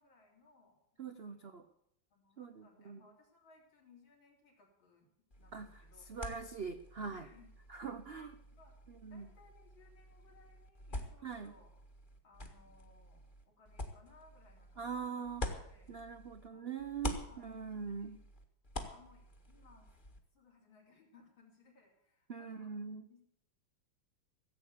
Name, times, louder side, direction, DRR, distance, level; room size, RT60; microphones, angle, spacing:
voice 1, 0.0-1.7 2.1-5.1 5.4-6.1 7.1-7.5 8.0-8.8 9.1-11.7 12.2-15.9 16.5-18.1 18.8-19.9 20.3-22.7 23.1-23.2, left 4 dB, 70° left, -1 dB, 4.3 m, -65 dB
voice 2, 1.0-1.6 2.4-3.0 5.5-5.7 6.1-7.3 7.7-8.3 8.9-9.3 11.2-11.5 14.8-15.5 15.9-18.2 22.3-23.0, right 6 dB, 70° right, 8 dB, 0.5 m, -42 dB
sound 1, 5.3-16.5 16.8-20.2, left 1 dB, 25° left, 1.6 m, -47 dB
15.5 x 8.2 x 8.3 m, 0.77 s
omnidirectional pair, 2.2 m